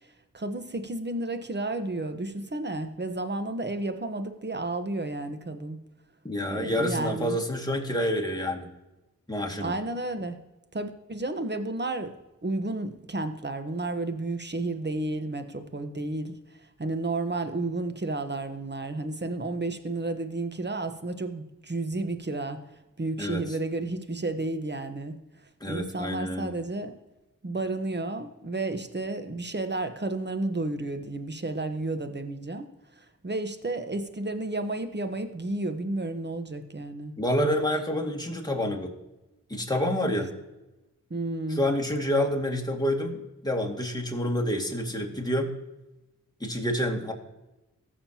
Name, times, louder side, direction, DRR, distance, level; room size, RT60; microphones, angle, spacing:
voice 1, 0.3-5.8 6.5-7.4 9.6-10.4 10.7-12.2 12.4-22.6 23.0-25.2 25.7-26.9 27.4-37.7 41.1-41.6, right 2 dB, 35° right, 8 dB, 1.2 m, -32 dB
voice 2, 6.2-8.7 9.3-9.7 23.2-23.4 25.6-26.5 37.2-38.9 39.5-40.3 41.5-45.5 46.4-47.1, left 1 dB, 10° left, 0 dB, 2.1 m, -28 dB
15.0 x 6.6 x 2.9 m, 1.0 s
cardioid pair, 45°, 32 cm